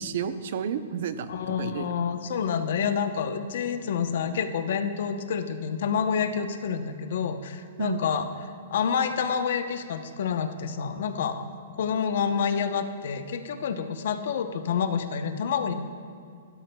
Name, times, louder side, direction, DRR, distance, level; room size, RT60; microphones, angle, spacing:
voice 1, 0.0-1.9 7.8-8.0, right 7 dB, 55° right, 11 dB, 0.6 m, -31 dB
voice 2, 1.3-8.3 8.7-11.5 11.8-15.7, left 7 dB, 60° left, 8 dB, 0.8 m, -28 dB
16.0 x 12.0 x 2.3 m, 2.3 s
hypercardioid pair, 165°, 0 cm